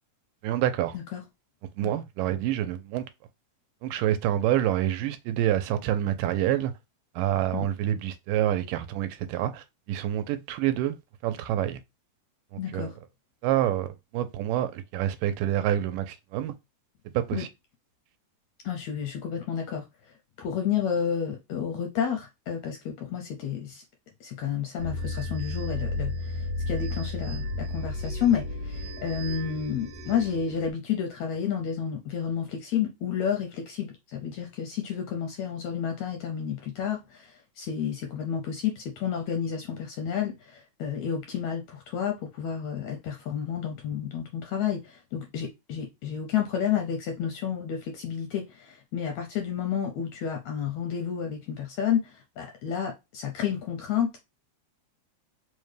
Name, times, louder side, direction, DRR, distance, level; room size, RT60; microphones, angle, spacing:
voice 1, 0.4-1.0 1.8-3.1 3.8-6.7 7.2-11.0 11.2-11.8 12.5-12.9 13.4-16.5 17.1-17.5, right 12 dB, 85° right, 2.2 m, -27 dB
voice 2, 12.6-12.9 17.3-17.4 18.6-19.9 20.4-23.8 24.2-26.1 26.7-54.1, left 8 dB, 75° left, 1.6 m, -30 dB
sound 1, 24.8-30.7, left 2 dB, 60° right, 1.6 m, -33 dB
5.1 x 2.2 x 3.2 m
omnidirectional pair, 3.8 m